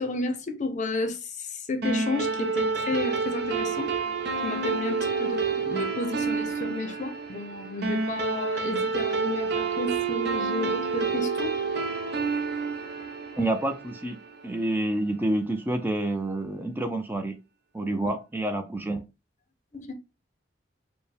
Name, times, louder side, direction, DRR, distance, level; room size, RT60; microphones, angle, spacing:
voice 1, 0.0-3.9 4.4-11.5 19.7-19.9, left 2 dB, 40° left, 0.6 m, -32 dB
sound 1, 1.8-14.6, right 4 dB, 60° right, 0.7 m, -29 dB
voice 2, 13.4-14.2 14.4-17.4 17.7-19.0, right 1 dB, 10° right, 0.4 m, -28 dB
4.4 x 2.1 x 3.3 m
head